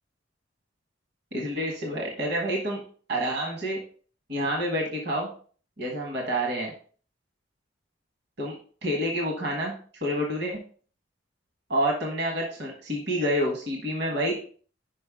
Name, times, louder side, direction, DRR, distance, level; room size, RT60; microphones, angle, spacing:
voice 1, 1.3-2.8 3.1-3.8 4.3-5.3 5.8-6.7 8.4-8.6 8.8-9.7 10.0-10.6 11.7-14.5, equal, 55° right, 0 dB, 1.2 m, -28 dB
5.3 x 5.3 x 3.6 m, 0.43 s
head